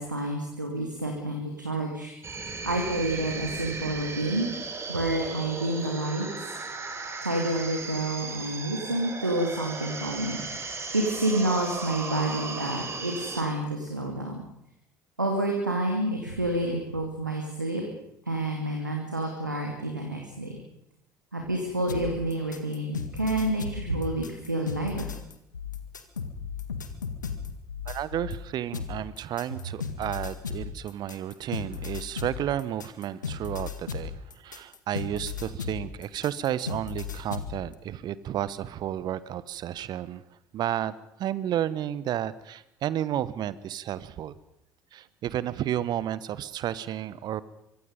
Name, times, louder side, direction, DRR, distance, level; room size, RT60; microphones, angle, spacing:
voice 1, 0.0-2.1 2.6-4.5 4.9-6.5 7.2-10.4 10.9-14.4 15.2-17.8 18.3-20.6 21.3-25.1, right 1 dB, 85° right, 1 dB, 2.6 m, -29 dB
sound 1, 2.2-13.4, right 4 dB, 25° right, 4.2 m, -36 dB
sound 2, 21.9-28.4 28.7-37.6, left 6 dB, 80° left, 1.7 m, -35 dB
voice 2, 27.9-40.2 40.5-40.9 41.2-44.3 44.9-47.4, right 11 dB, 45° right, 18 dB, 1.2 m, -32 dB
24.5 x 23.5 x 5.3 m, 0.82 s
figure-of-eight pair, 55°, 10 cm